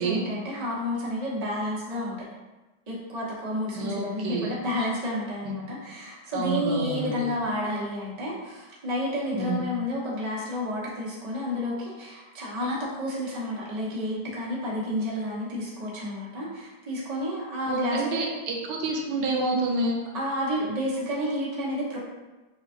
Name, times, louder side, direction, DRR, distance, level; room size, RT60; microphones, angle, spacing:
voice 1, 0.0-2.1 2.9-18.3 20.1-22.0, left 1 dB, 30° right, -6 dB, 0.9 m, -30 dB
voice 2, 3.7-4.5 5.4-5.6 6.3-7.3 9.3-9.6 17.7-20.0, right 3 dB, 80° right, 0 dB, 1.3 m, -28 dB
6.9 x 2.4 x 2.6 m, 1.1 s
omnidirectional pair, 1.9 m